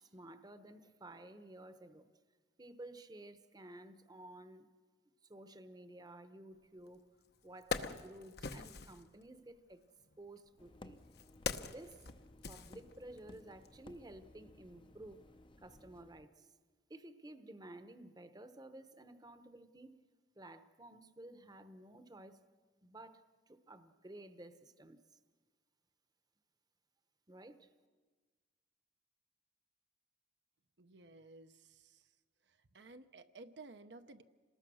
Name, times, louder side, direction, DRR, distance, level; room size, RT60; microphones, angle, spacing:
voice 1, 0.0-2.1 2.6-4.7 5.2-7.1 7.4-9.9 10.2-11.0 11.5-12.1 12.5-15.2 15.6-16.5 16.9-20.0 20.3-22.4 22.8-25.2 27.3-27.7, right 1 dB, 20° right, 10 dB, 0.9 m, -54 dB
Wood, 6.9-7.0 7.4-9.0 10.0-13.3 13.6-13.8, left 5 dB, 60° left, 0.9 m, -43 dB
sound 1, 10.6-16.2, left 1 dB, 30° left, 0.6 m, -59 dB
voice 2, 30.8-32.1 32.5-34.2, right 3 dB, 70° right, 8 dB, 0.8 m, -55 dB
27.0 x 19.5 x 6.3 m, 1.4 s
head